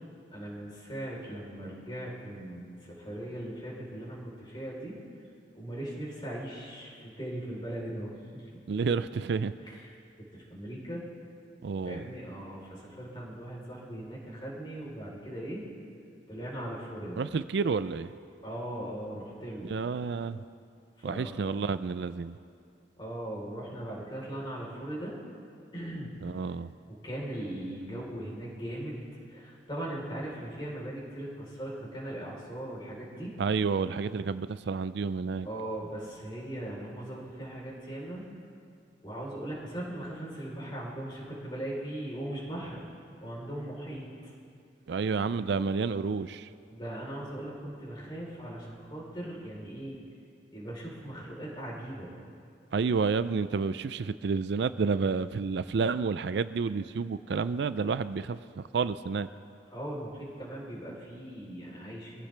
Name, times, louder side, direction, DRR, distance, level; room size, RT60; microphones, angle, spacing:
voice 1, 0.3-5.0 5.5-8.5 9.6-9.9 10.3-11.0 11.8-15.7 16.3-17.2 18.4-19.7 21.0-21.3 23.0-25.2 25.7-26.1 27.0-29.0 29.3-33.4 35.4-38.3 39.0-42.8 43.2-44.3 46.7-50.0 50.5-52.1 59.7-62.3, right 1 dB, 25° left, -4 dB, 3.9 m, -39 dB
voice 2, 8.7-9.5 11.6-12.0 17.2-18.1 19.6-20.4 21.0-22.4 26.2-26.7 33.4-35.5 44.9-46.5 52.7-59.3, right 5 dB, 65° right, 14 dB, 0.4 m, -30 dB
23.5 x 16.0 x 3.4 m, 2.3 s
head